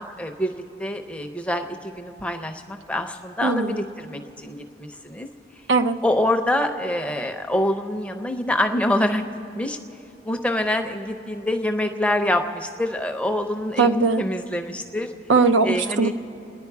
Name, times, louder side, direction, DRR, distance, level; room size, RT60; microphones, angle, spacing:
voice 1, 0.0-5.3 6.0-9.2 9.5-9.8 10.2-15.1 15.6-16.1, left 1 dB, 5° left, 5 dB, 0.6 m, -25 dB
voice 2, 3.4-3.8 5.7-6.0 13.8-14.2 15.3-16.1, right 4 dB, 70° right, 9 dB, 0.6 m, -19 dB
29.5 x 10.5 x 4.7 m, 2.7 s
head